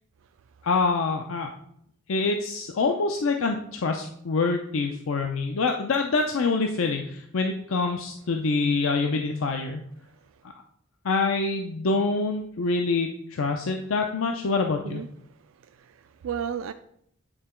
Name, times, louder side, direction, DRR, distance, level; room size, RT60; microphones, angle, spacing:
voice 1, 0.6-1.5 2.1-9.8 11.0-15.0, left 3 dB, 75° left, 4 dB, 0.5 m, -26 dB
voice 2, 15.5-16.7, right 8 dB, 75° right, 9 dB, 0.3 m, -34 dB
8.9 x 3.7 x 4.4 m, 0.69 s
head